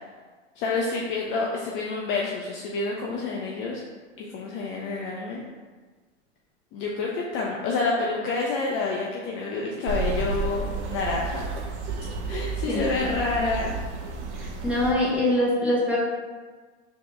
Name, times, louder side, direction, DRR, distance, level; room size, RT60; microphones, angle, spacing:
voice 1, 0.6-3.8 4.2-5.4 6.7-11.4 12.3-13.8, left 3 dB, 35° left, -2 dB, 0.5 m, -28 dB
sound 1, 9.9-14.9, right 4 dB, 75° right, 0.8 m, -31 dB
voice 2, 14.3-16.0, left 1 dB, 5° right, -6 dB, 1.1 m, -24 dB
4.0 x 2.9 x 3.1 m, 1.4 s
hypercardioid pair, 110°, 36 cm